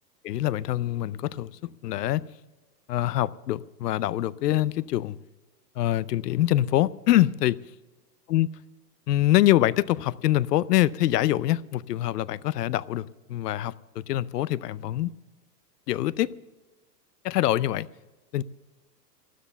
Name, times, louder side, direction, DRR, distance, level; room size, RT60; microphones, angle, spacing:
voice 1, 0.2-2.2 2.9-5.2 5.8-7.6 8.3-8.5 9.1-15.1 15.9-16.3 17.2-17.9 18.3-18.4, left 14 dB, 70° left, 0.6 m, -24 dB
12.5 x 12.5 x 6.8 m
supercardioid pair, 160°, 50 cm